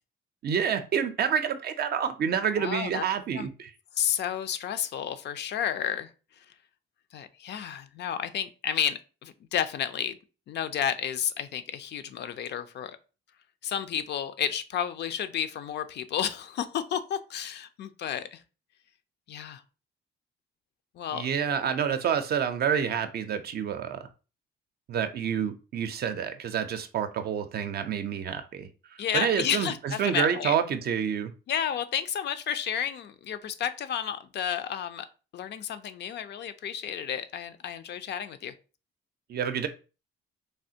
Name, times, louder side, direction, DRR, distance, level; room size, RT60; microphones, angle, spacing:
voice 1, 0.4-3.7 21.1-24.1 24.9-28.7 29.1-31.3 39.3-39.7, right 7 dB, 55° right, 0.5 m, -28 dB
voice 2, 2.6-3.0 3.3-3.5 3.9-6.5 7.1-10.2 10.5-13.0 13.6-18.4 19.3-19.6 20.9-21.3 29.0-30.6 31.5-35.1 35.3-38.5, left 9 dB, 60° left, 0.4 m, -31 dB
3.3 x 2.4 x 2.7 m
cardioid pair, 90°, 20 cm